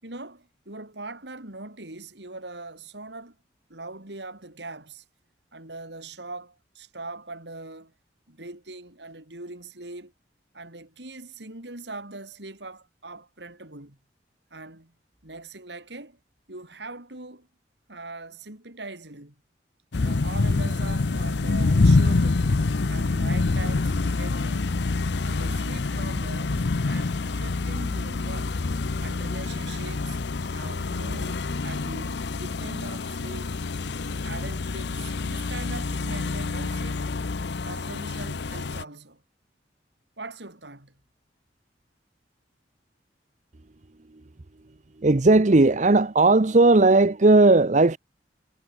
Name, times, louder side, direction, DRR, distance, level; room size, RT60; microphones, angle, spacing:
voice 1, 0.0-3.4 3.7-5.0 5.5-7.9 8.3-10.1 10.5-14.0 14.5-14.9 15.2-16.2 16.5-17.5 17.9-19.4 20.0-22.5 22.9-24.8 25.2-28.6 29.0-30.2 30.5-33.5 34.2-37.0 37.6-39.2 40.2-40.9, right 2 dB, 70° right, 4.4 m, -41 dB
sound 1, 19.9-38.8, left 3 dB, 70° left, 0.7 m, -26 dB
voice 2, 45.0-48.0, right 2 dB, 40° right, 0.8 m, -17 dB
head